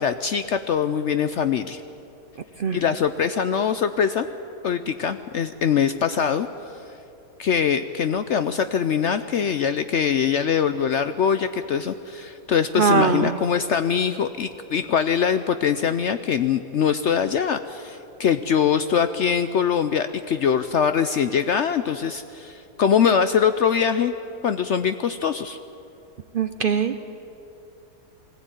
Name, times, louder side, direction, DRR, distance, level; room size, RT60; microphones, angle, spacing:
voice 1, 0.0-1.8 2.7-4.3 4.6-6.5 7.4-24.1 24.4-25.6, left 7 dB, 65° left, 10 dB, 0.7 m, -23 dB
voice 2, 12.8-13.4 26.3-27.1, right 5 dB, 70° right, 9 dB, 0.5 m, -21 dB
20.5 x 15.5 x 9.0 m, 2.8 s
omnidirectional pair, 1.7 m